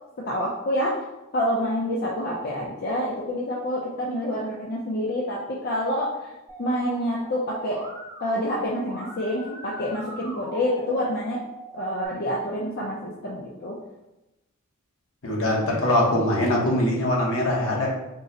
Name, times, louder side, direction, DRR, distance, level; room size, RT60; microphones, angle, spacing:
voice 1, 0.3-0.9 1.3-6.1 6.6-7.8 8.2-11.4 11.7-13.7, equal, 50° left, -4 dB, 0.5 m, -27 dB
Musical instrument, 6.5-12.1, right 1 dB, 20° right, 0.9 m, -42 dB
voice 2, 15.2-17.9, left 1 dB, 70° left, -3 dB, 0.9 m, -22 dB
3.8 x 2.1 x 3.7 m, 0.97 s
head